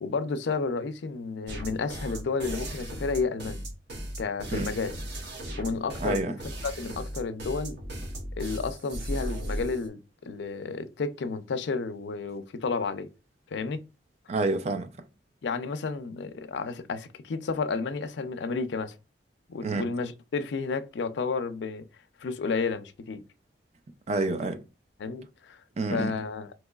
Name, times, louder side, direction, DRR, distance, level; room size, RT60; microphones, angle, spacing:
voice 1, 0.0-3.6 4.2-5.0 5.6-6.4 6.6-7.8 8.4-13.1 13.5-13.8 15.4-19.0 19.5-21.9 22.2-23.2 25.0-25.6 25.9-26.5, left 4 dB, 75° left, 0.4 m, -31 dB
sound 1, 1.5-9.9, equal, 65° right, 0.9 m, -36 dB
voice 2, 6.0-6.3 14.3-14.9 19.6-19.8 24.1-24.6 25.8-26.1, right 2 dB, 35° right, 0.4 m, -28 dB
3.8 x 2.9 x 2.3 m
head